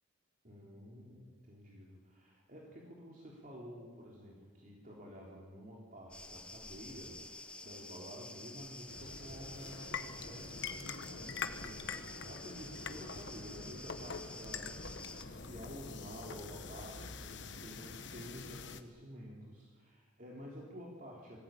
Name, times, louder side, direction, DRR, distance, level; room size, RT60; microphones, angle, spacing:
voice 1, 0.4-21.4, equal, 45° right, -3 dB, 3.5 m, -51 dB
sound 1, 6.1-15.2, left 2 dB, 5° left, 1.0 m, -50 dB
sound 2, 8.9-18.8, left 5 dB, 60° left, 1.3 m, -45 dB
22.5 x 15.5 x 9.1 m, 1.5 s
head